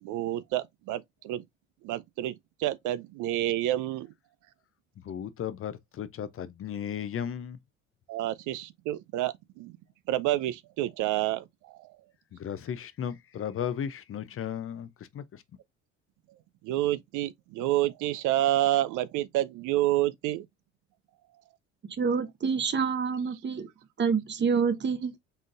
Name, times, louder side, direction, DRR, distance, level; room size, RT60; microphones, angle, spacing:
voice 1, 0.0-1.4 1.8-2.3 2.6-4.1 8.1-9.7 10.1-12.0 16.6-20.5, right 14 dB, 55° right, 0.5 m, -29 dB
voice 2, 5.0-7.6 12.3-15.4, left 9 dB, 35° left, 0.6 m, -35 dB
voice 3, 21.9-23.7 24.0-25.1, right 6 dB, 30° right, 0.9 m, -27 dB
4.3 x 3.6 x 2.5 m
hypercardioid pair, 60°, 36 cm